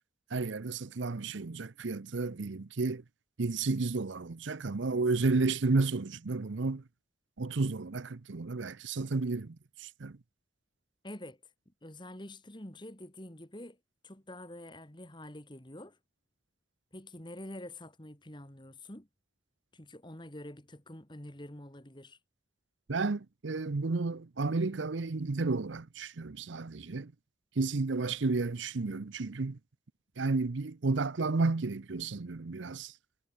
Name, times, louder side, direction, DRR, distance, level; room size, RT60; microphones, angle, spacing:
voice 1, 0.3-3.0 3.4-6.8 7.4-10.2 22.9-27.1 27.6-29.6 30.2-32.9, right 3 dB, 70° right, 0.7 m, -32 dB
voice 2, 11.0-11.4 11.7-13.8 14.0-16.0 16.9-19.1 19.7-22.2, left 1 dB, 25° left, 2.6 m, -47 dB
head